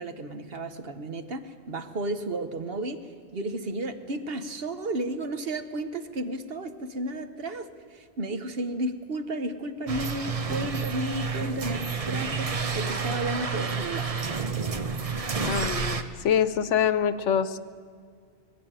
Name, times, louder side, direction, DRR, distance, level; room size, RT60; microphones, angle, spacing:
voice 1, 0.0-3.0 3.3-14.1, right 1 dB, 55° right, 9 dB, 1.3 m, -33 dB
sound 1, 9.9-16.0, right 5 dB, 35° right, 0.8 m, -30 dB
voice 2, 15.4-17.6, left 8 dB, 90° left, 14 dB, 1.1 m, -25 dB
19.5 x 16.0 x 9.0 m, 2.1 s
omnidirectional pair, 1.2 m